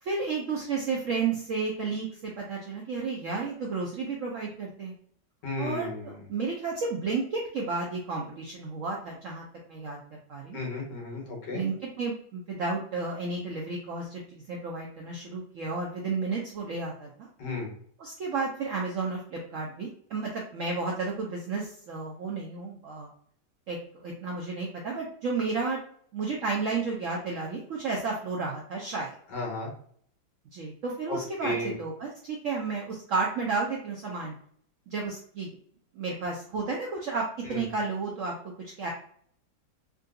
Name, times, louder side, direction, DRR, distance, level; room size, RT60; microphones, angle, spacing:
voice 1, 0.0-4.9 5.6-10.0 10.3-10.6 11.5-17.3 18.0-23.1 23.7-25.8 26.1-29.1 30.5-34.3 34.9-35.6 35.9-38.9, right 4 dB, 75° right, -1 dB, 0.7 m, -32 dB
voice 2, 5.4-6.2 10.5-11.6 17.4-17.7 29.3-29.7 31.1-31.7 37.5-37.6, left 2 dB, 75° left, -1 dB, 1.7 m, -33 dB
3.6 x 2.6 x 2.3 m, 0.62 s
omnidirectional pair, 2.0 m